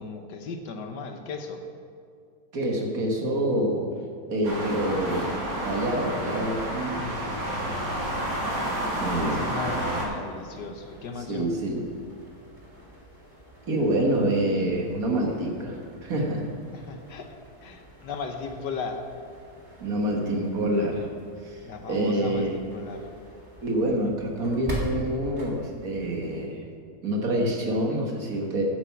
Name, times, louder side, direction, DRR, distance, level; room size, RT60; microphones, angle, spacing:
voice 1, 0.0-1.6 9.2-11.5 16.7-17.3 17.6-19.0 21.6-23.1, left 4 dB, 75° left, 5 dB, 1.6 m, -36 dB
voice 2, 2.5-3.9 4.3-7.1 9.0-9.4 11.3-11.9 13.7-16.5 19.8-21.1 21.4-21.6 21.9-22.6 23.6-26.7 27.0-28.6, right 1 dB, 55° right, 0 dB, 1.9 m, -27 dB
sound 1, 4.4-10.1, right 1 dB, 75° right, 2.5 m, -30 dB
sound 2, 10.2-26.4, equal, 25° right, 1.9 m, -43 dB
10.0 x 8.1 x 5.9 m, 2.3 s
omnidirectional pair, 1.8 m